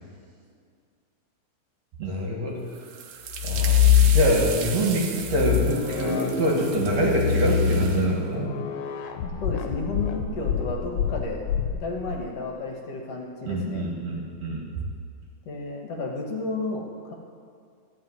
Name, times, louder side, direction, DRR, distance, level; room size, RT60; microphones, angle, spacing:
voice 1, 2.0-2.6 3.4-8.5 13.5-14.6, right 1 dB, 65° right, -2 dB, 2.9 m, -25 dB
sound 1, 2.7-8.1, right 7 dB, 80° right, 2.3 m, -37 dB
sound 2, 3.3-4.7 5.2-12.2, left 9 dB, 80° left, 2.1 m, -24 dB
voice 2, 9.2-11.4 11.7-13.9 15.5-17.1, left 3 dB, 60° left, 0 dB, 2.2 m, -32 dB
14.5 x 5.4 x 9.3 m, 2.2 s
omnidirectional pair, 3.3 m